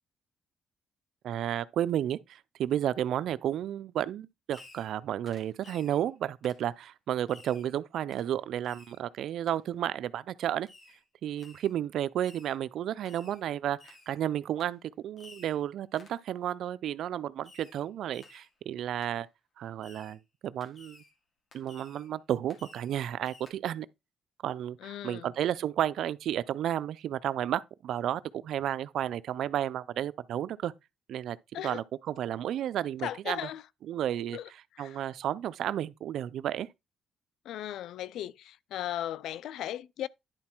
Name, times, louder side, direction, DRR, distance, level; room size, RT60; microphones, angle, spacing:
voice 1, 1.2-10.7 11.2-19.3 19.6-21.0 21.5-23.9 24.4-30.7 31.1-31.4 31.6-33.4 33.9-34.4 34.8-36.7, right 11 dB, 75° right, 0.4 m, -32 dB
Fireworks, 4.5-5.0 5.3-6.0 6.4-6.7 7.3-7.7 8.1-8.3 8.6-9.0 9.5-9.6 10.7-11.0 11.4-11.7 12.2-12.6 13.1-13.4 13.8-14.2 14.6-14.7 15.2-15.6 16.0-16.2 17.4-17.8 18.1-18.5 19.0-19.1 19.8-20.2 20.6-21.1 21.5-22.1 22.5-23.0 23.3-23.5, left 3 dB, 50° left, 2.5 m, -55 dB
voice 2, 24.8-25.3 31.5-31.8 33.0-33.6 34.3-34.5 34.8-35.0 37.5-40.1, left 12 dB, 80° left, 0.4 m, -37 dB
10.5 x 4.0 x 4.5 m
cardioid pair, 90°, 0 cm